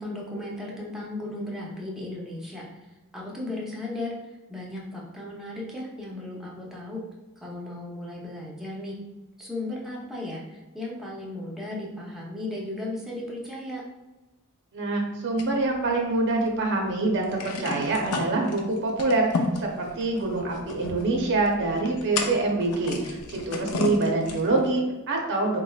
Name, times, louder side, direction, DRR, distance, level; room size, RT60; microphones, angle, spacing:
voice 1, 0.0-2.6 3.1-4.1 4.5-7.0 7.4-8.9 9.4-13.8, left 2 dB, ahead, -4 dB, 0.6 m, -35 dB
voice 2, 14.7-19.3 19.6-25.6, right 2 dB, 55° right, 1 dB, 0.7 m, -25 dB
sound 1, 15.4-16.5 16.8-16.9 17.2-24.7, left 3 dB, 80° left, 0.5 m, -33 dB
3.9 x 3.1 x 2.3 m, 1.1 s
head